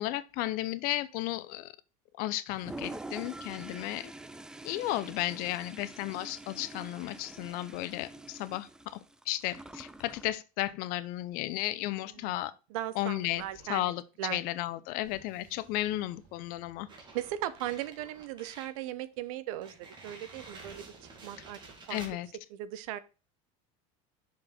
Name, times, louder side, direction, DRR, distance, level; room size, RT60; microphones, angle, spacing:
voice 1, 0.0-1.7 2.2-4.1 4.6-12.5 13.0-13.4 13.7-14.0 14.3-16.9 21.9-22.3, left 16 dB, 55° left, 0.7 m, -34 dB
Toilet flush, 2.5-10.4, right 2 dB, 5° right, 0.4 m, -46 dB
voice 2, 12.1-12.4 12.7-13.9 14.2-14.4 15.4-15.5 17.1-20.9 21.2-21.6 21.9-22.0 22.5-23.0, right 13 dB, 80° right, 0.9 m, -38 dB
Explosion, 13.3-13.9 14.7-18.6, right 4 dB, 45° right, 3.9 m, -61 dB
sound 1, 16.9-18.8 19.2-19.3 19.6-22.2, right 3 dB, 25° right, 2.3 m, -50 dB
6.6 x 5.2 x 4.3 m
supercardioid pair, 145°, 17 cm